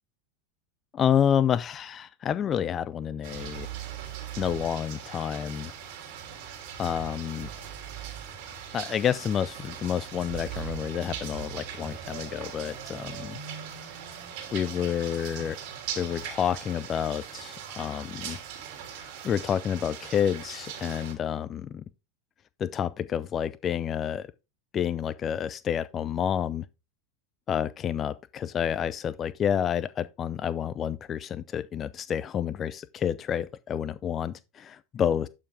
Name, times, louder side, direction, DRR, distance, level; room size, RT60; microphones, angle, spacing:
voice 1, 0.9-3.7 4.4-5.7 6.8-7.5 8.7-13.4 14.5-15.6 16.0-18.4 18.9-21.8 22.6-24.3 24.7-26.7 27.5-35.3, left 9 dB, 30° left, 0.5 m, -29 dB
sound 1, 3.2-21.1, right 8 dB, 60° right, 3.0 m, -40 dB
11.5 x 5.6 x 3.5 m
hypercardioid pair, 95°, 0 cm